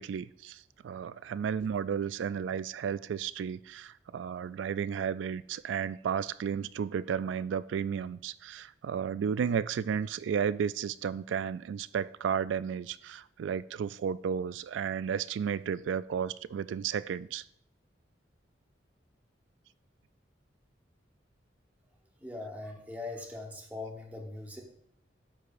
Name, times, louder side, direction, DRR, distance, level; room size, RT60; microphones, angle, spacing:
voice 1, 0.0-17.4, right 7 dB, 85° right, 17 dB, 0.3 m, -33 dB
voice 2, 22.2-24.6, left 2 dB, 10° right, 0 dB, 1.1 m, -41 dB
12.5 x 4.9 x 2.6 m, 0.69 s
head